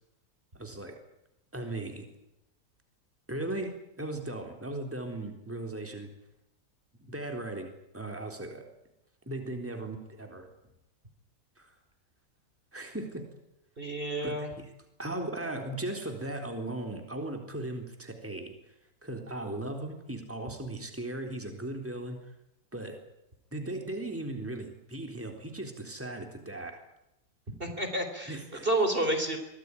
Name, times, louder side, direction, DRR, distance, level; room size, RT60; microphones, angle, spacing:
voice 1, 0.5-0.9 1.5-2.1 3.3-6.1 7.0-8.6 9.3-10.5 11.6-11.7 12.7-13.2 14.2-14.7 15.0-18.7 19.0-22.2 22.7-23.0 23.5-26.8 28.3-28.7, right 1 dB, 5° right, 4 dB, 3.8 m, -37 dB
voice 2, 13.8-14.5 27.6-29.4, right 1 dB, 30° right, 6 dB, 3.8 m, -30 dB
24.5 x 18.5 x 9.9 m, 0.85 s
omnidirectional pair, 1.8 m